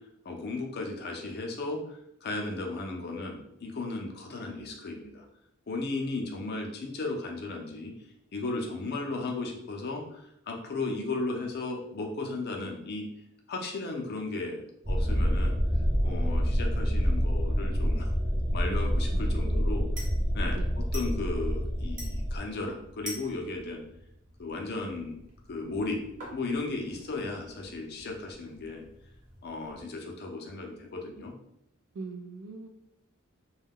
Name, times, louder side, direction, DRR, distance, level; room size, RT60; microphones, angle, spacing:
voice 1, 0.2-5.2 5.7-7.9 8.3-13.1 13.5-14.6 14.9-15.6 16.0-18.1 18.5-19.9 20.3-23.8 24.4-25.1 25.5-26.0 26.3-28.8 29.4-31.3, left 3 dB, 50° left, 2 dB, 0.5 m, -35 dB
sound 1, 14.8-22.4, equal, 15° right, 0.6 m, -27 dB
Glass Tap No Liquid, 17.0-29.8, equal, 40° right, 0.9 m, -49 dB
voice 2, 19.1-19.7 20.6-20.7 31.9-32.7, right 4 dB, 60° right, 6 dB, 0.3 m, -41 dB
2.3 x 2.1 x 3.4 m, 0.77 s
head